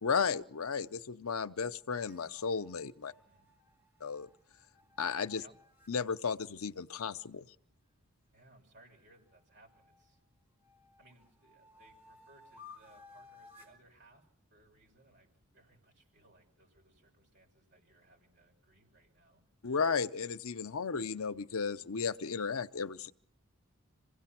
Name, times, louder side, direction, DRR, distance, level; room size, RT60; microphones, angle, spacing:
voice 1, 0.0-3.1 4.0-4.3 5.0-5.4 5.9-7.5 19.6-23.1, left 5 dB, 85° left, 12 dB, 0.8 m, -34 dB
sound 1, 2.1-5.9 8.9-10.1 10.6-13.8, left 4 dB, 10° right, 4.5 m, -59 dB
voice 2, 3.0-3.5 5.4-5.6 8.3-10.2 11.0-19.4, right 2 dB, 55° right, 1 dB, 7.2 m, -64 dB
27.0 x 17.0 x 6.0 m, 0.71 s
head